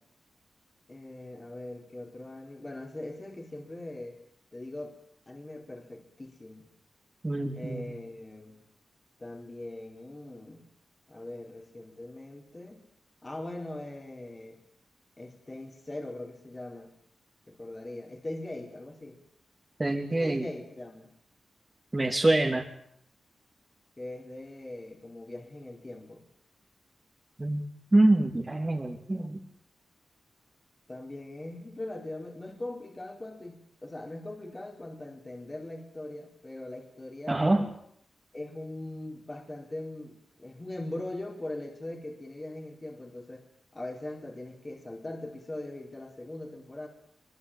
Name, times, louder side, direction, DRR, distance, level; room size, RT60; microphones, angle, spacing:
voice 1, 0.9-4.2 4.5-4.9 5.3-6.7 7.5-8.6 9.2-10.7 11.1-12.8 13.2-14.6 15.2-16.9 17.5-19.2 20.1-21.1 24.0-26.2 30.9-37.4 38.3-43.5 43.7-46.9, left 1 dB, 30° left, 2 dB, 4.4 m, -41 dB
voice 2, 7.2-7.9 19.8-20.4 21.9-22.6 27.4-27.6 27.9-29.4 37.3-37.7, right 2 dB, 25° right, 1 dB, 3.0 m, -25 dB
23.5 x 22.5 x 9.1 m, 0.68 s
cardioid pair, 70°, 0 cm